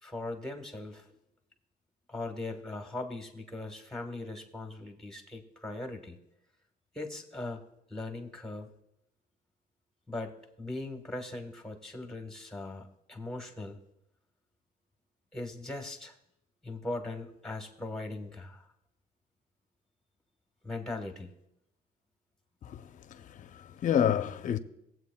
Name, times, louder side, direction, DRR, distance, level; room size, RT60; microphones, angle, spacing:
voice 1, 0.0-1.1 2.1-6.2 6.9-7.6 7.9-8.7 10.1-13.8 15.3-16.1 16.6-18.7 20.6-21.3, left 2 dB, 5° left, 1.3 m, -39 dB
voice 2, 23.1-24.6, left 9 dB, 50° left, 0.6 m, -29 dB
19.5 x 7.8 x 2.3 m
cardioid pair, 110°, 17 cm